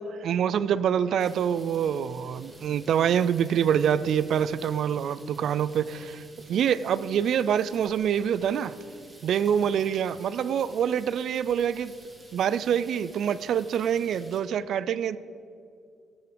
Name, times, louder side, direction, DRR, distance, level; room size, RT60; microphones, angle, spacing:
voice 1, 0.2-6.2 6.5-8.8 9.2-11.9 12.3-15.2, right 8 dB, 65° right, 0.4 m, -25 dB
sound 1, 1.2-14.4, right 1 dB, 20° right, 2.2 m, -52 dB
17.0 x 6.8 x 5.1 m
cardioid pair, 110°, 0 cm